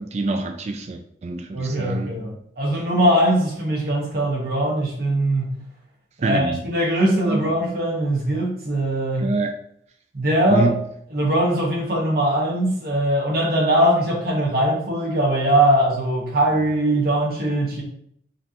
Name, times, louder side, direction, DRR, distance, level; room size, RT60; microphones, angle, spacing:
voice 1, 0.0-2.1 6.2-6.6 7.3-7.4 9.2-9.6 10.5-10.8, right 3 dB, 40° right, 6 dB, 0.3 m, -25 dB
voice 2, 1.5-2.3 2.6-5.5 6.2-9.3 10.1-10.7 11.1-17.8, right 1 dB, 55° right, -2 dB, 1.3 m, -21 dB
5.2 x 3.2 x 2.9 m, 0.67 s
head